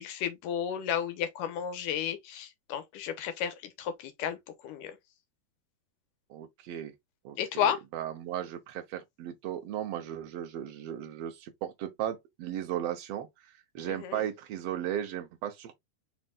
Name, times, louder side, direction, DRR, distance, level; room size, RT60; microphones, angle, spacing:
voice 1, 0.0-4.4 4.6-4.9 7.4-7.8 13.9-14.2, left 9 dB, 75° left, 2.4 m, -32 dB
voice 2, 6.3-6.9 7.2-13.3 13.7-15.8, right 11 dB, 85° right, 1.4 m, -36 dB
5.1 x 4.4 x 2.3 m
omnidirectional pair, 3.8 m